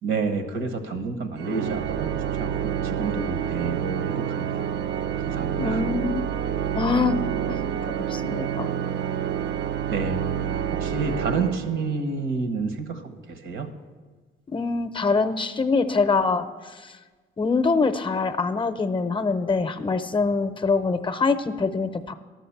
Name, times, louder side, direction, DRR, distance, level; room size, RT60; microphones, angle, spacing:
voice 1, 0.0-4.6 5.2-5.8 9.9-13.0 13.3-13.7, right 4 dB, 80° right, 7 dB, 1.2 m, -30 dB
Organ, 1.4-12.2, right 9 dB, 60° right, 0.4 m, -28 dB
voice 2, 5.6-6.3 6.7-7.6 8.1-8.7 14.5-17.0 17.4-22.1, left 4 dB, 25° left, 10 dB, 0.6 m, -24 dB
12.0 x 6.1 x 7.1 m, 1.4 s
cardioid pair, 90°, 20 cm